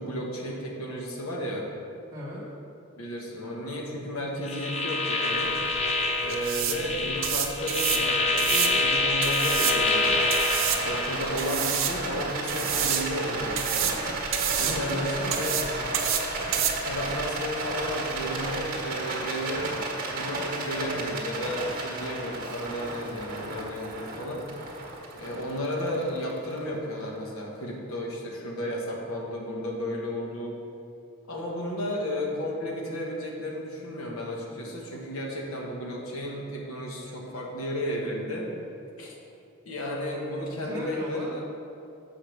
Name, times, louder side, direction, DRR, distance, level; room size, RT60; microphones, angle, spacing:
voice 1, 0.0-1.7 3.0-5.5 6.2-10.2 10.8-14.0 14.6-15.5 16.9-19.7 20.1-24.6 25.1-30.6 31.3-38.5 39.0-39.2 39.6-41.4, equal, 75° left, -1 dB, 1.3 m, -33 dB
voice 2, 2.1-2.4 14.6-15.9 40.6-41.4, equal, 10° right, -8 dB, 1.6 m, -38 dB
sound 1, 4.4-11.2, left 2 dB, 30° left, 0.6 m, -26 dB
sound 2, 5.3-18.8, right 9 dB, 60° right, 0.7 m, -31 dB
Rattle, 9.8-27.2, right 2 dB, 45° right, 1.5 m, -33 dB
7.0 x 5.2 x 5.9 m, 2.6 s
head